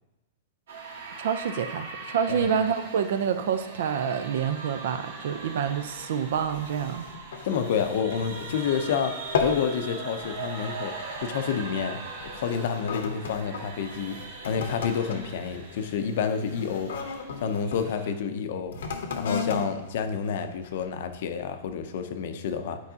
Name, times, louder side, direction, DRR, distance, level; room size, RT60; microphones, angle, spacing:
sound 1, 0.7-18.1, right 4 dB, 80° right, 1.4 m, -41 dB
voice 1, 1.2-7.1, right 7 dB, 60° right, 9 dB, 0.5 m, -27 dB
sound 2, 6.3-8.9 9.2-9.7 10.1-10.4 11.1-11.3 12.1-17.9 18.7-21.0 21.6-21.7, left 6 dB, 80° left, 0.8 m, -35 dB
voice 2, 7.4-10.9 11.2-14.2 14.4-16.9 17.4-18.8 19.2-22.8, left 7 dB, 55° left, 8 dB, 0.6 m, -29 dB
9.0 x 4.7 x 2.8 m, 0.98 s
supercardioid pair, 170°, 0 cm